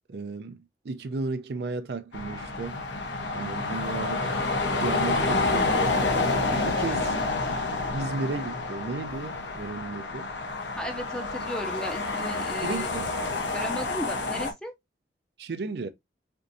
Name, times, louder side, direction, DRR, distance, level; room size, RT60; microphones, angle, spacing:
voice 1, 0.1-2.8 3.3-4.3 4.7-6.0 6.5-7.2 7.9-10.3 12.6-13.2 15.4-15.9, right 3 dB, 65° right, 0.4 m, -34 dB
sound 1, 2.1-14.5, left 3 dB, 85° left, 0.9 m, -28 dB
voice 2, 10.8-12.9 13.5-14.7, equal, 5° left, 0.6 m, -35 dB
4.3 x 2.6 x 2.5 m
head